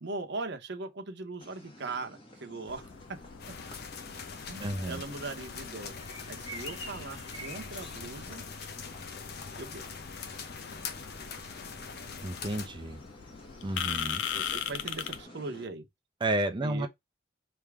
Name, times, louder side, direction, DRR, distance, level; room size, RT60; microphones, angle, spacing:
voice 1, 0.0-2.9 4.4-5.9 6.3-8.4 9.6-9.8 14.3-15.9 16.6-16.9, right 3 dB, 65° right, 1.0 m, -40 dB
sound 1, 1.4-15.7, equal, 30° left, 1.5 m, -50 dB
sound 2, 2.7-15.2, left 8 dB, 85° left, 0.5 m, -41 dB
sound 3, 3.4-12.7, left 5 dB, 55° left, 0.8 m, -43 dB
voice 2, 4.6-5.0 8.6-8.7 12.2-13.0 13.6-14.2 16.2-16.9, right 1 dB, 25° right, 0.6 m, -31 dB
3.6 x 2.9 x 4.7 m
head